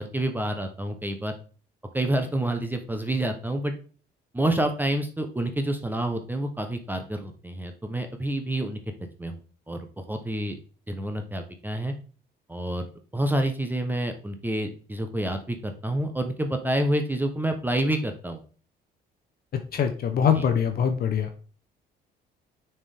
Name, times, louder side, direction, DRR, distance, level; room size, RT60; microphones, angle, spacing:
voice 1, 0.0-1.3 1.9-3.7 4.3-8.8 9.2-9.4 9.7-9.8 10.1-10.5 10.9-11.9 12.5-12.9 13.1-18.4 20.3-20.5, right 1 dB, 10° right, 5 dB, 0.8 m, -28 dB
voice 2, 19.7-21.3, left 8 dB, 55° left, 6 dB, 0.8 m, -23 dB
6.7 x 4.4 x 3.4 m, 0.39 s
cardioid pair, 95°, 18 cm